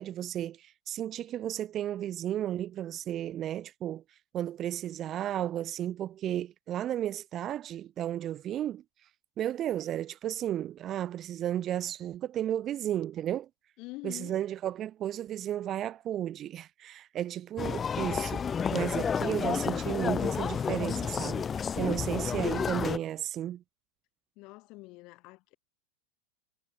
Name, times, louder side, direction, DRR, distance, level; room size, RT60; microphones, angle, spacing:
voice 1, 0.0-4.0 4.3-8.8 9.4-13.5 14.0-18.4 18.7-23.6, right 11 dB, 35° right, 0.6 m, -33 dB
voice 2, 13.8-14.4 24.4-25.6, left 23 dB, 50° left, 3.3 m, -45 dB
sound 1, 17.6-23.0, left 7 dB, 25° left, 1.6 m, -31 dB
hypercardioid pair, 115°, 0 cm